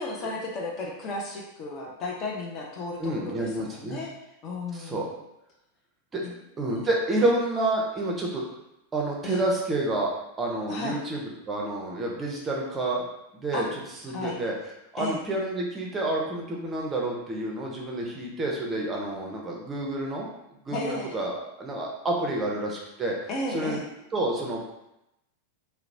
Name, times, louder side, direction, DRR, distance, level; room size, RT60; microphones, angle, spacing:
voice 1, 0.0-4.1 4.4-5.1 6.2-6.3 9.2-9.4 10.7-11.0 13.5-13.7 14.1-14.4 15.0-15.2 20.7-21.2 23.3-23.8, left 2 dB, 35° left, -1 dB, 0.5 m, -34 dB
voice 2, 3.0-4.0 4.7-5.0 6.1-6.2 6.6-8.4 8.9-10.1 10.4-11.2 11.5-13.1 13.3-14.5 14.9-20.3 20.7-23.1 23.5-23.8 24.1-24.7, right 2 dB, 20° right, -2 dB, 0.5 m, -29 dB
2.8 x 2.0 x 2.6 m, 0.88 s
figure-of-eight pair, 90°, 0 cm